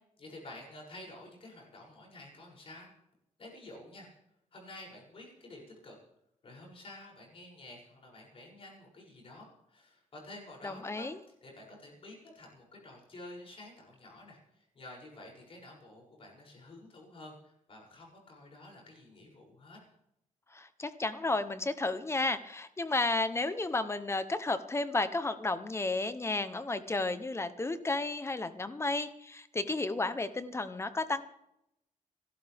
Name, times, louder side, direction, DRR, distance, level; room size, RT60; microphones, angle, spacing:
voice 1, 0.2-2.9 3.4-4.1 4.5-6.0 6.4-11.1 11.4-19.8, left 1 dB, 45° left, -2 dB, 7.0 m, -50 dB
voice 2, 10.6-11.2 20.5-31.2, left 2 dB, 20° left, 11 dB, 0.9 m, -32 dB
28.5 x 13.0 x 3.5 m, 0.80 s
wide cardioid pair, 165°, 13 cm